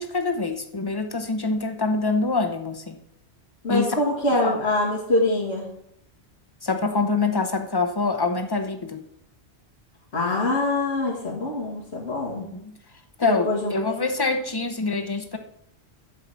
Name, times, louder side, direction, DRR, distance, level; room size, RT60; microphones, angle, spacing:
voice 1, 0.0-3.0 3.7-4.0 4.4-4.6 6.6-9.1 12.4-12.8 13.2-15.4, left 3 dB, 25° left, 7 dB, 0.8 m, -25 dB
voice 2, 3.6-5.7 10.1-12.5 13.2-14.0, left 2 dB, 85° left, -8 dB, 2.3 m, -24 dB
10.5 x 4.9 x 7.1 m, 0.76 s
omnidirectional pair, 1.1 m